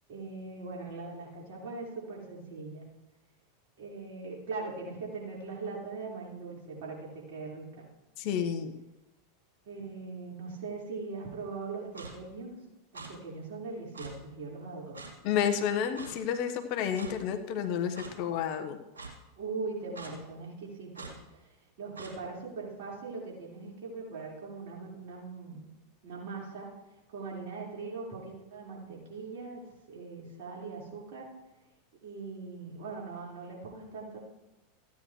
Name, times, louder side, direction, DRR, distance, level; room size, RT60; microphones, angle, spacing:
voice 1, 0.1-2.8 3.8-7.8 9.6-12.5 12.9-15.0 19.4-25.7 26.0-26.7 27.1-29.6 29.9-31.3 32.0-34.2, right 4 dB, 60° right, -4 dB, 4.6 m, -41 dB
voice 2, 8.2-8.7 15.2-18.8, left 8 dB, 55° left, 7 dB, 1.2 m, -30 dB
Clock, 11.9-12.1 12.9-13.1 13.9-14.1 14.9-15.1 16.0-16.1 17.0-17.1 17.9-18.1 18.9-19.1 19.9-20.1 20.9-21.1 22.0-22.1, right 4 dB, 85° right, 2.3 m, -43 dB
16.0 x 9.6 x 3.2 m, 0.98 s
hypercardioid pair, 90°, 0 cm